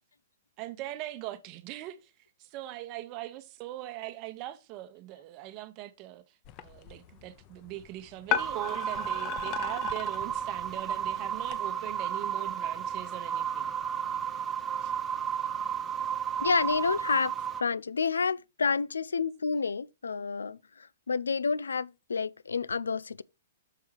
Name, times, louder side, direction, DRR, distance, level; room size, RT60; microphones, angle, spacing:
voice 1, 0.6-2.1 2.4-6.2 6.6-13.7 14.8-14.9, right 14 dB, 35° right, 1.0 m, -41 dB
sound 1, 6.4-11.6, left 10 dB, 35° left, 0.7 m, -37 dB
sound 2, 8.4-17.6, right 8 dB, 10° right, 1.0 m, -33 dB
voice 2, 16.4-17.3 17.6-23.2, left 5 dB, 75° left, 0.4 m, -29 dB
6.8 x 4.7 x 4.6 m
figure-of-eight pair, 115°, 0 cm